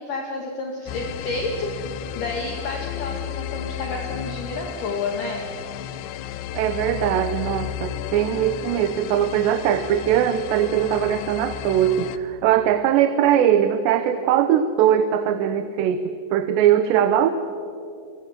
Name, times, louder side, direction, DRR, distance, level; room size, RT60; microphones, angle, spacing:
voice 1, 0.0-5.4, left 3 dB, 55° left, 1 dB, 3.1 m, -30 dB
sound 1, 0.9-12.2, left 10 dB, 90° left, 3.2 m, -33 dB
voice 2, 6.5-17.3, right 10 dB, 80° right, 10 dB, 3.1 m, -21 dB
28.5 x 24.5 x 7.4 m, 2.6 s
omnidirectional pair, 5.0 m